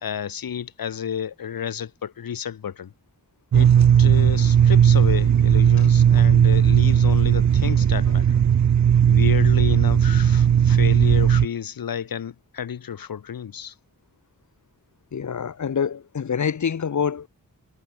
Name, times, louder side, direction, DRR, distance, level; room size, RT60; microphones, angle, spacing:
voice 1, 0.0-2.9 3.5-3.7 4.0-8.4 9.1-13.7, left 8 dB, 90° left, 1.4 m, -31 dB
sound 1, 3.5-11.5, right 8 dB, 55° right, 0.7 m, -16 dB
voice 2, 15.1-17.3, left 7 dB, 60° left, 1.3 m, -26 dB
wide cardioid pair, 175°, 34 cm